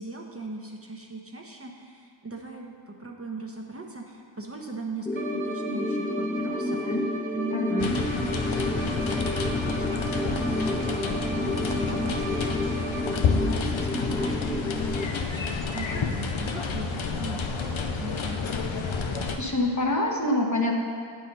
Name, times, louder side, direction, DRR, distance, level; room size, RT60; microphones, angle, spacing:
voice 1, 0.0-6.8 7.3-7.8 8.2-18.4, right 3 dB, 30° right, 1 dB, 0.9 m, -39 dB
sound 1, 5.1-15.1, left 1 dB, 5° left, 0.4 m, -30 dB
Bowed string instrument, 5.1-13.4, right 5 dB, 75° right, 1.4 m, -38 dB
voice 2, 7.5-7.9 19.4-20.7, left 1 dB, 40° left, 0 dB, 1.1 m, -26 dB
sound 2, 7.8-19.4, left 5 dB, 80° left, 0.7 m, -29 dB
9.0 x 4.8 x 5.4 m, 2.2 s
cardioid pair, 45°, 46 cm